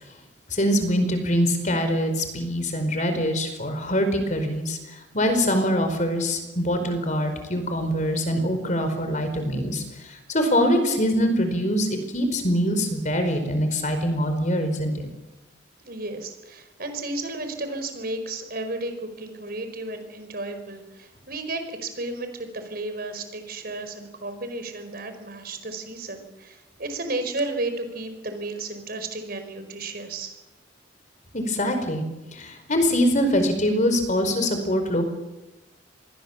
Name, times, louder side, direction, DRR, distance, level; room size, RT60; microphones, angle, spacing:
voice 1, 0.5-14.9 31.3-32.0 32.3-35.0, equal, 40° left, 7 dB, 4.8 m, -24 dB
voice 2, 15.8-30.4, right 2 dB, 50° right, 8 dB, 4.8 m, -33 dB
28.5 x 22.0 x 7.3 m, 1.0 s
head